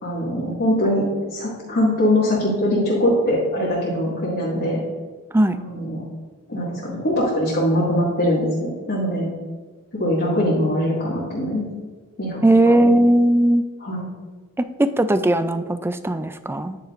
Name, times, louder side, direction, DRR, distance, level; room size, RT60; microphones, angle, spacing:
voice 1, 0.0-1.0 1.3-4.8 5.6-6.0 6.5-9.3 9.9-11.6 12.2-12.4 12.8-12.9 13.8-14.1, equal, 50° left, -7 dB, 2.0 m, -22 dB
voice 2, 12.4-13.7 14.6-16.8, right 1 dB, 10° right, 11 dB, 0.3 m, -18 dB
10.0 x 9.1 x 2.5 m, 1.4 s
head